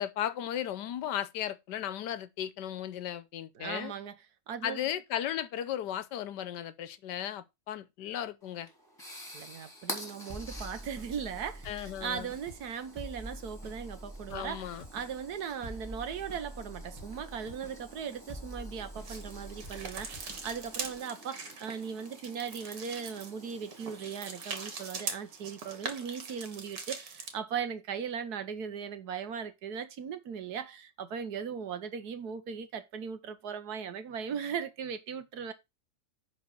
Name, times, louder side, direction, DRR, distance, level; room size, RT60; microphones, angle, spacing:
voice 1, 0.0-3.9 4.6-8.7 11.6-12.3 14.3-14.8, left 11 dB, 75° left, 1.3 m, -35 dB
voice 2, 3.5-4.1 4.5-4.8 9.3-35.5, right 7 dB, 65° right, 1.5 m, -38 dB
sound 1, 8.4-26.4, left 1 dB, 10° left, 3.0 m, -50 dB
sound 2, 10.3-21.0, right 1 dB, 10° right, 2.8 m, -46 dB
sound 3, 19.0-27.4, right 5 dB, 80° right, 2.2 m, -42 dB
10.5 x 4.1 x 5.3 m
omnidirectional pair, 1.9 m